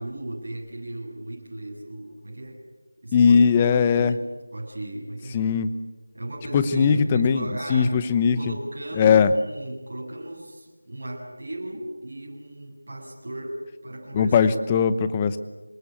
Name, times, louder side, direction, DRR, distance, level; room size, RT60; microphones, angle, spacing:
voice 1, 0.0-2.6 3.0-3.4 3.7-4.2 4.5-5.4 6.1-8.0 8.4-14.5, right 1 dB, 50° right, -2 dB, 7.7 m, -36 dB
voice 2, 3.1-4.2 5.3-5.7 6.5-7.4 7.7-8.4 9.0-9.3 14.1-15.4, left 6 dB, 15° left, 13 dB, 0.9 m, -19 dB
26.0 x 21.0 x 8.5 m, 1.2 s
figure-of-eight pair, 170°, 0 cm